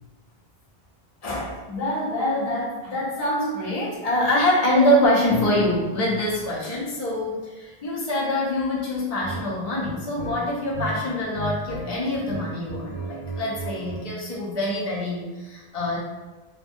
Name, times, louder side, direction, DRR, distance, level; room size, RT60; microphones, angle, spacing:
voice 1, 1.2-16.0, left 1 dB, 40° left, -5 dB, 0.7 m, -25 dB
sound 1, 9.2-9.4 9.8-10.9 11.2-11.9 12.1-14.0, right 3 dB, 85° left, 1.4 m, -34 dB
2.7 x 2.2 x 2.6 m, 1.2 s
omnidirectional pair, 1.1 m